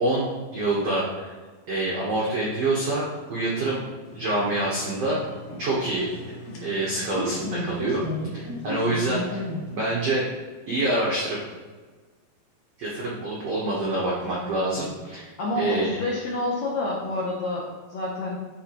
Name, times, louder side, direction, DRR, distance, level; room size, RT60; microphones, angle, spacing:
voice 1, 0.0-1.3 1.7-3.0 3.3-3.8 4.1-5.2 5.6-6.1 6.6-8.0 8.3-9.4 9.7-10.2 10.7-11.4 12.8-16.0, right 2 dB, 75° right, -5 dB, 1.4 m, -26 dB
sound 1, 4.1-10.1, left 1 dB, 55° left, 2.2 m, -35 dB
voice 2, 15.4-18.4, left 2 dB, 85° left, -4 dB, 1.5 m, -28 dB
11.5 x 4.9 x 3.0 m, 1.4 s
omnidirectional pair, 4.6 m